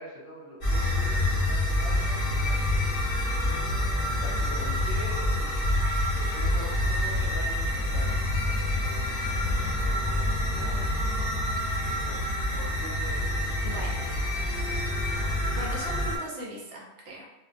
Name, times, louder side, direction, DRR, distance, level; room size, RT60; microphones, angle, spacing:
voice 1, 0.0-2.7 3.4-3.6 4.1-5.9 6.1-8.2 10.0-10.1 10.4-10.9 11.8-14.4, equal, 15° right, -10 dB, 1.2 m, -44 dB
sound 1, 0.6-16.2, left 1 dB, 45° left, 0.9 m, -27 dB
voice 2, 13.6-13.9 15.5-17.3, right 1 dB, 60° right, -3 dB, 0.6 m, -39 dB
2.4 x 2.2 x 2.4 m, 1.0 s
omnidirectional pair, 1.5 m